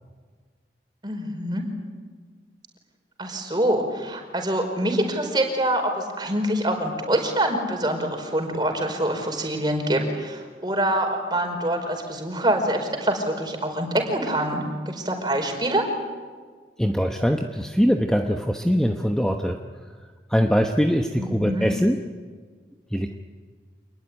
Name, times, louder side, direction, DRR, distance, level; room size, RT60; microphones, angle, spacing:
voice 1, 1.0-1.6 3.2-15.9 21.2-21.7, right 1 dB, 25° right, 4 dB, 5.0 m, -25 dB
voice 2, 16.8-19.6 20.3-22.0 22.9-23.2, equal, 5° left, 3 dB, 1.0 m, -22 dB
27.5 x 20.5 x 9.9 m, 1.6 s
head